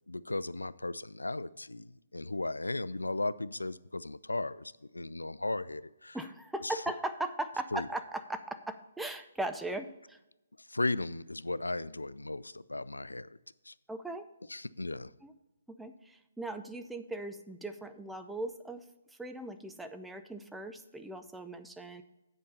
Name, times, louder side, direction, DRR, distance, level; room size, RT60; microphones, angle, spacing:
voice 1, 0.1-6.2 6.6-6.7 7.7-7.9 10.7-13.3 13.7-13.8 14.5-15.1, left 2 dB, 85° left, 17 dB, 0.3 m, -36 dB
voice 2, 6.1-10.2 13.9-14.3 15.2-15.3 15.8-18.8 19.2-22.0, right 2 dB, 5° right, 8 dB, 0.5 m, -39 dB
8.5 x 5.2 x 5.3 m, 0.97 s
figure-of-eight pair, 140°, 0 cm